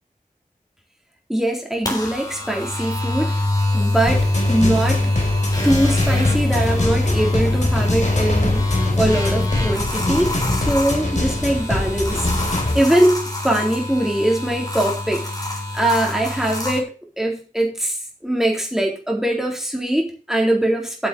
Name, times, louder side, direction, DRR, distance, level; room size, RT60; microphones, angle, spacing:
voice 1, 1.3-3.3 3.7-5.0 5.6-8.6 9.0-15.2 15.7-16.9 17.2-21.1, right 1 dB, 5° right, 0 dB, 3.7 m, -22 dB
sound 1, 1.8-16.8, left 2 dB, 25° left, 3.6 m, -23 dB
sound 2, 4.1-12.8, left 1 dB, 55° left, 3.1 m, -24 dB
9.2 x 6.8 x 6.7 m, 0.36 s
wide cardioid pair, 40°, 15 cm